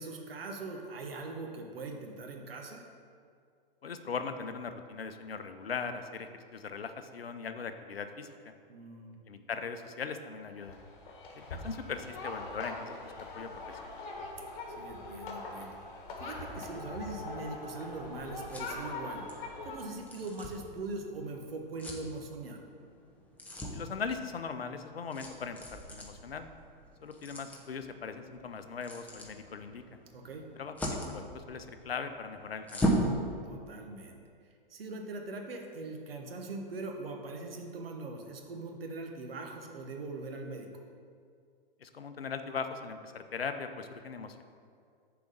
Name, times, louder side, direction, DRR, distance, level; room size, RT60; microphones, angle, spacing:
voice 1, 0.0-2.8 8.7-9.2 14.8-15.8 16.2-19.3 19.6-22.6 30.1-30.5 33.4-34.2 34.7-40.7, right 3 dB, 75° right, 2 dB, 1.3 m, -41 dB
voice 2, 3.8-8.5 9.3-10.8 11.4-14.0 23.7-26.5 27.0-30.0 30.6-30.7 31.1-33.0 41.8-44.4, left 5 dB, 90° left, 9 dB, 0.7 m, -40 dB
sound 1, 10.6-19.8, left 3 dB, 60° left, 1.7 m, -42 dB
sound 2, 17.7-33.1, right 1 dB, 5° left, 1.0 m, -39 dB
6.9 x 4.8 x 6.5 m, 2.3 s
hypercardioid pair, 115°, 29 cm